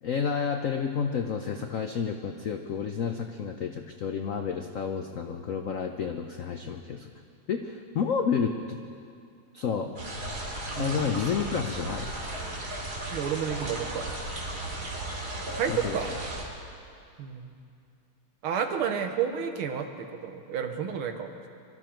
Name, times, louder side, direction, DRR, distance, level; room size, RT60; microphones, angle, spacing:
voice 1, 0.0-7.1 7.5-8.8 9.5-10.0 10.7-12.1 15.7-16.0, left 6 dB, 90° left, 5 dB, 0.7 m, -30 dB
sound 1, 10.0-16.4, right 1 dB, 45° right, 3.1 m, -35 dB
voice 2, 10.8-11.1 13.1-14.1 15.5-16.1 17.2-17.5 18.4-21.5, right 7 dB, 80° right, 5 dB, 2.0 m, -31 dB
24.0 x 13.5 x 4.5 m, 2.4 s
omnidirectional pair, 2.4 m